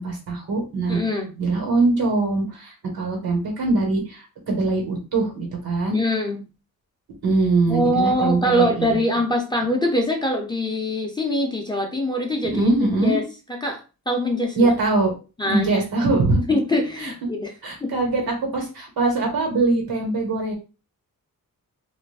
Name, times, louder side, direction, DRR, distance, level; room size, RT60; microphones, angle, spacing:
voice 1, 0.0-1.0 1.4-6.0 7.2-9.0 12.4-13.2 14.6-15.1 15.4-16.6 17.0-17.1 17.6-20.5, right 3 dB, 80° right, 1 dB, 1.3 m, -22 dB
voice 2, 0.9-1.3 5.9-6.4 7.7-13.2 13.6-13.8 14.1-14.7 15.4-15.8 16.5-17.5 17.8-17.9, left 1 dB, 15° left, 0 dB, 0.4 m, -23 dB
2.5 x 2.5 x 3.3 m, 0.32 s
wide cardioid pair, 180°, 36 cm